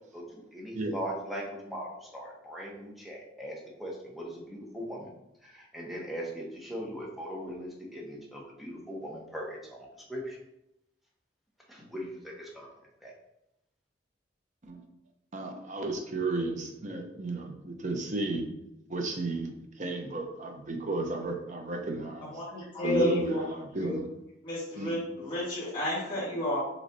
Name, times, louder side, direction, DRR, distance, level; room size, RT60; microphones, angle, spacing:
voice 1, 0.1-5.1 5.4-10.4 11.7-12.7 13.0-13.1, equal, ahead, -3 dB, 1.0 m, -40 dB
voice 2, 15.3-18.4 18.9-22.3 22.8-24.0 24.8-25.0, right 2 dB, 40° right, 3 dB, 0.7 m, -33 dB
voice 3, 22.2-24.0 24.4-26.6, left 1 dB, 25° left, -11 dB, 1.6 m, -31 dB
6.2 x 3.2 x 2.7 m, 0.85 s
head